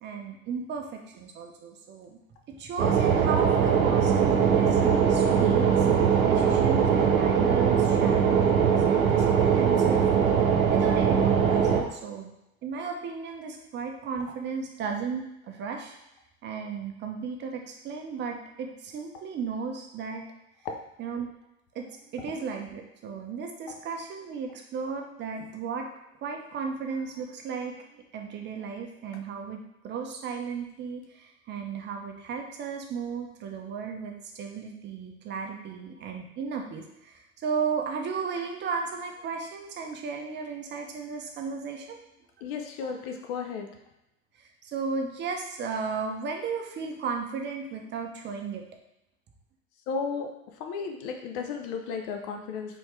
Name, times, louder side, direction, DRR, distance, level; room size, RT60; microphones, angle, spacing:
voice 1, 0.0-2.2 2.5-5.9 6.3-10.0 10.7-12.3 12.6-15.9 16.4-20.2 21.0-21.3 21.7-25.9 26.2-42.0 44.7-48.6, right 5 dB, 25° right, 2 dB, 0.7 m, -35 dB
sound 1, 2.8-11.8, right 7 dB, 65° right, 0.8 m, -21 dB
voice 2, 42.4-43.7 49.9-50.3 50.6-52.8, left 5 dB, 45° left, 4 dB, 0.8 m, -34 dB
4.4 x 3.6 x 3.2 m, 0.87 s
figure-of-eight pair, 75°, 43 cm